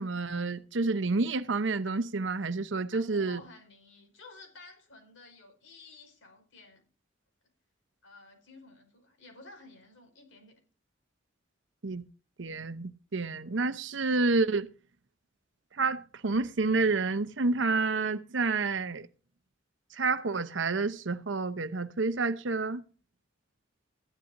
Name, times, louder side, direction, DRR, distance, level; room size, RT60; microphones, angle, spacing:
voice 1, 0.0-3.4 11.8-12.1 12.4-14.7 15.8-19.1 19.9-22.8, right 3 dB, 70° right, 0.8 m, -29 dB
voice 2, 2.9-6.8 8.0-10.6, left 2 dB, 85° left, 5.2 m, -52 dB
15.5 x 11.5 x 2.7 m
head